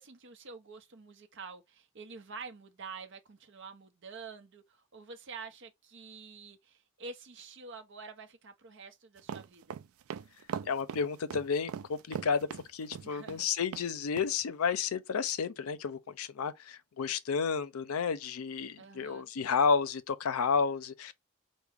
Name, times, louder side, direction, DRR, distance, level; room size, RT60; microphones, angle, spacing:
voice 1, 0.0-9.8 13.0-13.5 18.8-19.3, right 4 dB, 60° right, 0.7 m, -48 dB
sound 1, 9.2-13.5 13.7-13.9 14.2-14.3, right 8 dB, 75° right, 0.3 m, -40 dB
voice 2, 10.7-21.1, left 5 dB, 90° left, 0.5 m, -31 dB
4.7 x 2.1 x 3.4 m
head